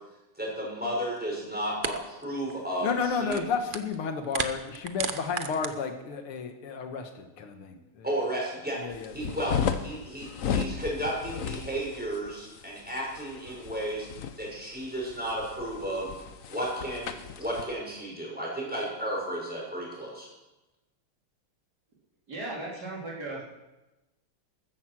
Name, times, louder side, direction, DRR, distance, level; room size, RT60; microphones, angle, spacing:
voice 1, 0.4-3.4 8.0-8.8 9.1-14.1 14.4-16.1 16.5-20.3, right 1 dB, 5° right, -3 dB, 5.8 m, -33 dB
sound 1, 1.2-1.3 1.8-2.5 2.9-4.0 4.2-5.7, right 5 dB, 80° right, 0.4 m, -34 dB
voice 2, 2.8-8.1 8.8-9.6, left 5 dB, 80° left, 6 dB, 2.2 m, -32 dB
sound 2, 8.9-17.7, left 7 dB, 55° left, 0.9 m, -35 dB
voice 3, 22.3-23.4, right 2 dB, 45° right, -4 dB, 3.9 m, -36 dB
15.0 x 14.0 x 6.1 m, 1.0 s
omnidirectional pair, 2.4 m